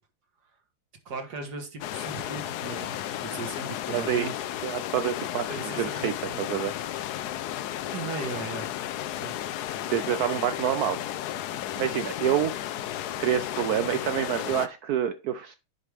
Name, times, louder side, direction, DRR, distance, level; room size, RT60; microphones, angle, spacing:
voice 1, 1.1-4.4 5.5-6.5 7.9-8.7 9.1-9.3, right 4 dB, 55° right, 2.0 m, -37 dB
sound 1, 1.8-14.7, left 12 dB, 75° left, 0.9 m, -33 dB
voice 2, 3.9-4.3 4.6-6.7 9.9-11.0 11.8-12.5 13.2-15.5, right 10 dB, 85° right, 0.8 m, -27 dB
9.7 x 5.0 x 3.4 m
omnidirectional pair, 2.2 m